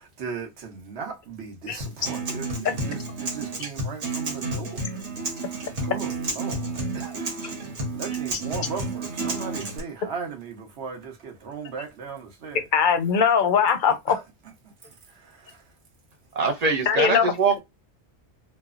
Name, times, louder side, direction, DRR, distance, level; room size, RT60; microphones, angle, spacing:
voice 1, 0.2-7.6 7.9-12.7 14.1-14.2 14.6-15.7, right 5 dB, 70° right, 1.1 m, -38 dB
Acoustic guitar, 1.8-9.8, right 3 dB, 90° right, 1.2 m, -31 dB
voice 2, 12.7-14.2 16.9-17.3, left 7 dB, 55° left, 0.6 m, -20 dB
voice 3, 16.3-17.6, right 4 dB, 50° right, 0.5 m, -23 dB
3.1 x 2.1 x 2.3 m
omnidirectional pair, 1.2 m